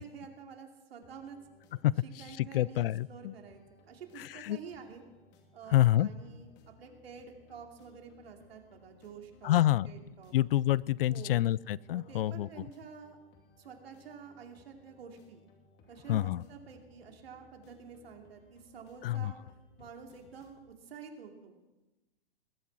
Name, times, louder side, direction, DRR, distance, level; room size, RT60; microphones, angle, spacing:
voice 1, 0.0-1.4 2.0-5.0 5.5-6.5 6.8-10.4 11.1-11.6 11.9-13.2 13.6-15.5 15.9-19.4 19.8-21.6, right 6 dB, 75° right, 3 dB, 2.8 m, -49 dB
sound 1, 1.0-20.7, left 3 dB, 35° left, 2.7 m, -63 dB
voice 2, 2.4-3.3 4.4-4.6 5.7-6.1 9.4-9.9 10.3-12.5 16.1-16.4 19.0-19.3, left 14 dB, 65° left, 24 dB, 0.4 m, -27 dB
21.0 x 9.1 x 6.1 m, 1.1 s
hypercardioid pair, 120°, 31 cm